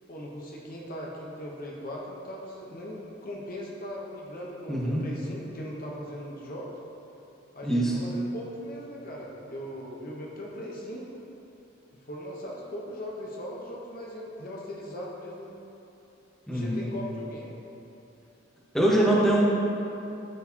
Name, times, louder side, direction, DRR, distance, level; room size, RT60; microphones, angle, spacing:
voice 1, 0.1-6.7 7.5-11.1 11.9-15.6 16.5-17.6, equal, 45° left, -3 dB, 0.9 m, -39 dB
voice 2, 4.7-5.0 7.6-7.9 16.5-16.8 18.7-19.4, right 1 dB, ahead, -6 dB, 1.1 m, -23 dB
12.5 x 4.6 x 2.8 m, 3.0 s
head